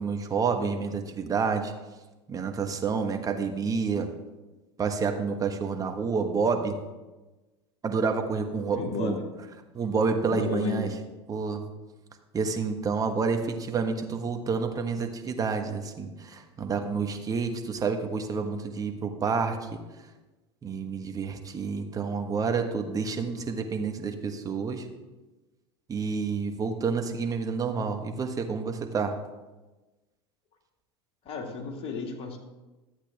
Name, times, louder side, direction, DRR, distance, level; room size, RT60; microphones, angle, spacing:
voice 1, 0.0-1.7 2.3-4.1 4.8-6.8 7.8-9.1 9.7-10.9 11.3-11.6 12.3-19.8 20.6-24.8 25.9-29.2, right 5 dB, 25° right, 5 dB, 1.3 m, -29 dB
voice 2, 8.7-9.2 10.3-11.0 31.3-32.4, left 4 dB, 40° left, 2 dB, 2.1 m, -33 dB
12.5 x 8.1 x 3.5 m, 1.1 s
hypercardioid pair, 85°, 14 cm